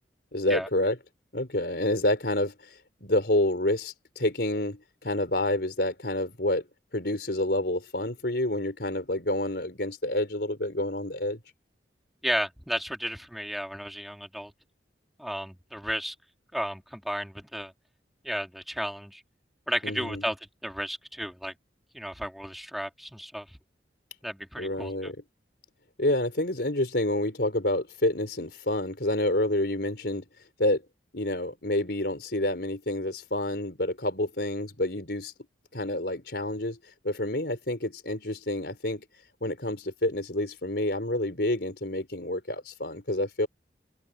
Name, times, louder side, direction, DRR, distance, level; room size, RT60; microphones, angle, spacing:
voice 1, 0.3-1.0 1.3-2.7 3.0-6.7 6.9-11.4 19.8-20.2 24.6-25.2 26.0-30.2 30.6-30.8 31.1-35.3 35.7-36.8 37.0-39.0 39.4-43.5, left 1 dB, 60° left, 5.1 m, -28 dB
voice 2, 12.2-14.5 15.2-16.1 16.5-17.7 18.2-19.2 19.7-20.4 20.6-21.5 21.9-23.6 24.2-25.1, equal, ahead, 2.9 m, -33 dB
head